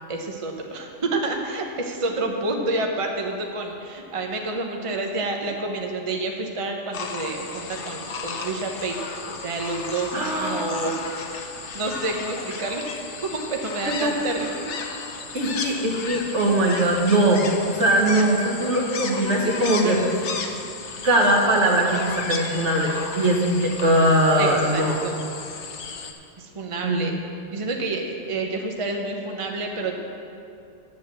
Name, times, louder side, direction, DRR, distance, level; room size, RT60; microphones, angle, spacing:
voice 1, 0.1-9.0 9.2-11.5 11.7-12.9 13.3-14.7 24.4-25.2 26.4-27.1 27.5-30.0, right 2 dB, 30° right, 2 dB, 0.9 m, -29 dB
sound 1, 6.9-26.1, left 4 dB, 70° left, 1.1 m, -34 dB
voice 2, 10.1-10.7 13.8-14.4 15.3-17.4 17.7-20.0 21.0-24.9 26.8-27.1, right 1 dB, 70° right, -1 dB, 1.8 m, -21 dB
10.5 x 7.4 x 7.4 m, 2.5 s
omnidirectional pair, 1.2 m